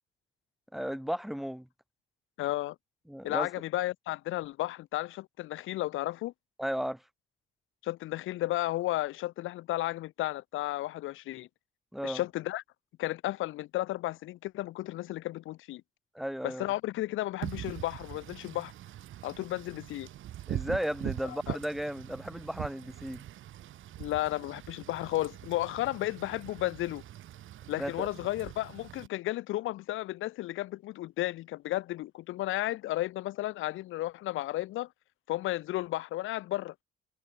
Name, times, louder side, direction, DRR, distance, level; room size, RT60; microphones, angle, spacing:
voice 1, 0.7-1.7 3.1-3.5 6.6-7.0 11.9-12.2 16.1-16.6 20.5-23.2 27.8-28.1, equal, ahead, 1.3 m, -34 dB
voice 2, 2.4-2.7 3.2-6.3 7.8-11.5 12.0-12.6 13.0-15.8 16.4-18.7 19.2-20.1 21.2-21.6 24.0-27.0 27.7-34.9 35.3-36.7, left 16 dB, 85° left, 1.3 m, -33 dB
Wind / Rain, 17.4-29.1, right 13 dB, 80° right, 6.2 m, -42 dB
cardioid pair, 90°, 20 cm